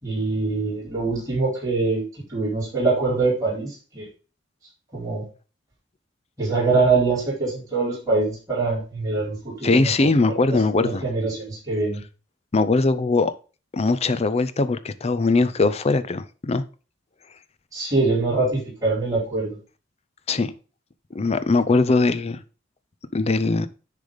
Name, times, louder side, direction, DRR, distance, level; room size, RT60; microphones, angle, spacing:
voice 1, 0.0-2.0 2.3-4.1 4.9-5.2 6.4-12.0 17.7-19.6, right 3 dB, 20° right, 4.4 m, -24 dB
voice 2, 9.6-11.0 12.5-13.3 13.7-16.6 20.3-20.5 21.1-22.4 23.1-23.7, left 3 dB, 35° left, 0.5 m, -21 dB
10.0 x 3.4 x 5.1 m
head